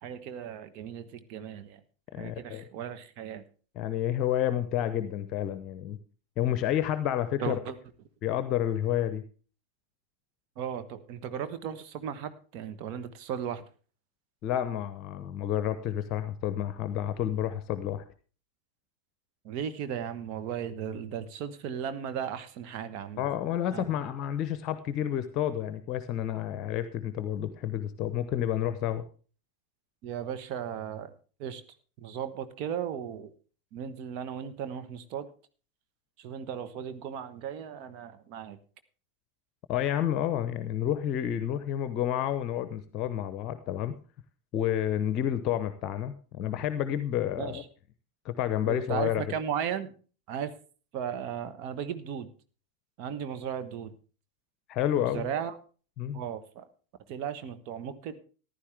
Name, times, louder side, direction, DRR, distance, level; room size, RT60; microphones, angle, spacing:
voice 1, 0.0-1.8 2.2-3.4 7.4-7.7 10.6-13.6 19.4-23.2 23.7-23.9 30.0-31.1 31.4-31.6 32.0-33.3 33.7-35.3 36.2-38.6 47.4-47.6 48.7-49.9 50.3-50.5 50.9-52.3 53.0-53.9 55.0-55.6 56.1-56.6 57.1-58.2, right 8 dB, 40° right, 10 dB, 1.3 m, -36 dB
voice 2, 2.1-2.6 3.7-6.0 6.4-7.6 8.2-9.2 14.4-18.0 23.2-29.0 39.7-43.9 44.5-47.6 48.2-49.2 54.7-55.3 56.0-56.2, left 11 dB, 35° left, 12 dB, 0.9 m, -30 dB
14.5 x 11.5 x 3.5 m, 0.38 s
figure-of-eight pair, 90°, 0 cm